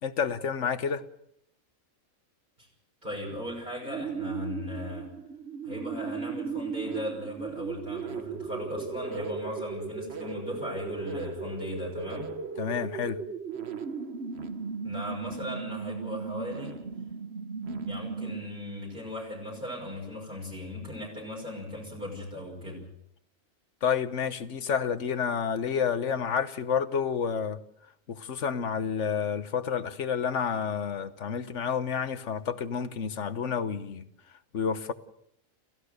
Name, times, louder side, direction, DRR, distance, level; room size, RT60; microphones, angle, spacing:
voice 1, 0.0-1.0 12.6-13.2 23.8-27.6 28.1-34.0 34.5-34.9, left 7 dB, 60° left, 1.4 m, -29 dB
voice 2, 3.0-5.1 5.6-12.3 14.8-16.8 17.8-22.9, left 1 dB, 35° right, 6.4 m, -38 dB
sound 1, 3.8-18.7, right 5 dB, 50° right, 1.4 m, -36 dB
28.5 x 16.0 x 6.7 m
omnidirectional pair, 1.4 m